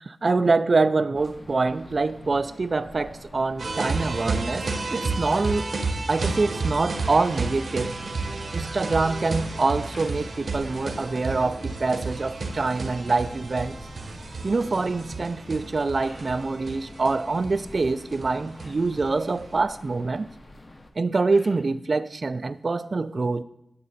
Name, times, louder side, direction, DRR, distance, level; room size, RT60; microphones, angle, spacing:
voice 1, 0.0-5.7 6.1-7.9 8.5-13.8 14.4-20.3 21.0-23.4, right 3 dB, 45° right, 15 dB, 0.3 m, -25 dB
sound 1, 1.1-20.9, left 1 dB, 25° left, 0.7 m, -46 dB
sound 2, 3.6-19.4, right 3 dB, 60° right, 0.9 m, -32 dB
sound 3, 7.0-7.5 8.3-8.4 9.8-10.4 10.7-10.8 11.2-11.3 11.9-12.0 12.9-13.4 14.2-14.3 14.9-15.0 15.9-16.4 18.5-19.0 19.8-19.9 21.2-21.7, left 1 dB, 80° left, 3.0 m, -51 dB
9.2 x 6.8 x 4.1 m, 0.84 s
wide cardioid pair, 135°, 0 cm